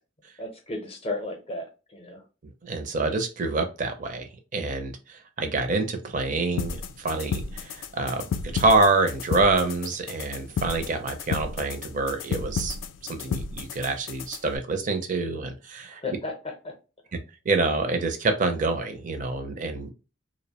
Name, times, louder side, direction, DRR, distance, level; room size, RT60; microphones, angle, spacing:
voice 1, 0.4-2.2 15.9-16.7, left 2 dB, 30° left, 0.6 m, -34 dB
voice 2, 2.6-12.8 13.0-16.0 17.1-17.2 17.4-19.9, right 3 dB, 40° right, 0.5 m, -26 dB
sound 1, 6.6-14.6, left 6 dB, 85° left, 0.3 m, -33 dB
2.5 x 2.1 x 2.8 m
head